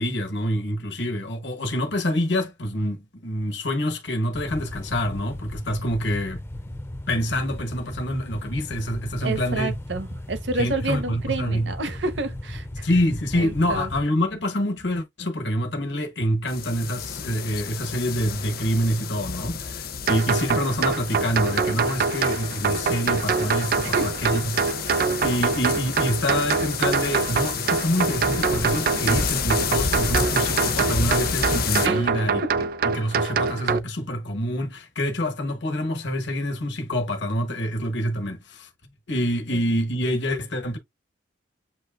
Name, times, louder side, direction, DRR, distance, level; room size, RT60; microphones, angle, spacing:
voice 1, 0.0-6.4 7.1-9.7 10.6-11.7 12.8-32.4 32.9-38.7 39.1-40.8, equal, 70° left, 1.2 m, -26 dB
sound 1, 4.3-14.0, left 1 dB, 15° left, 0.4 m, -36 dB
voice 2, 9.2-12.9 13.3-13.9 23.8-24.2 24.9-25.1 31.8-32.1 32.4-32.5 39.5-39.6, right 2 dB, 70° right, 0.9 m, -29 dB
sound 2, 16.5-31.9, left 6 dB, 50° left, 0.7 m, -30 dB
sound 3, 20.1-33.8, right 5 dB, 50° right, 0.4 m, -25 dB
7.8 x 2.9 x 2.4 m
head